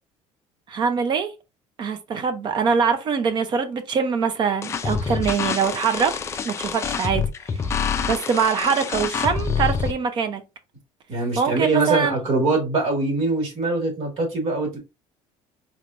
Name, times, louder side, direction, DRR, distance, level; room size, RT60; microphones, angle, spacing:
voice 1, 0.7-1.3 1.8-6.2 6.4-7.2 8.1-10.4 11.4-12.2, right 6 dB, 35° right, 0.6 m, -23 dB
sound 1, 4.6-9.9, left 6 dB, 20° left, 0.3 m, -26 dB
voice 2, 11.1-14.8, right 2 dB, 50° right, 1.8 m, -23 dB
4.1 x 3.3 x 2.5 m
cardioid pair, 175°, 13 cm